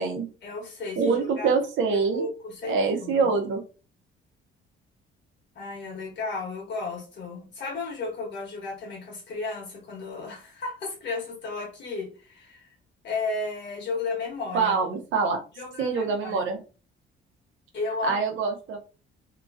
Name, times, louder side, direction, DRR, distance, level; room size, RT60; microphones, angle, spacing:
voice 1, 0.4-1.5 2.1-3.3 5.5-12.6 13.0-14.8 15.5-16.4 17.7-18.2, left 3 dB, 65° left, 1.3 m, -33 dB
voice 2, 1.0-2.3 2.7-3.6 14.5-15.4 15.8-16.6 18.0-18.8, right 4 dB, 75° right, 0.7 m, -25 dB
2.9 x 2.5 x 2.5 m
cardioid pair, 90°, 20 cm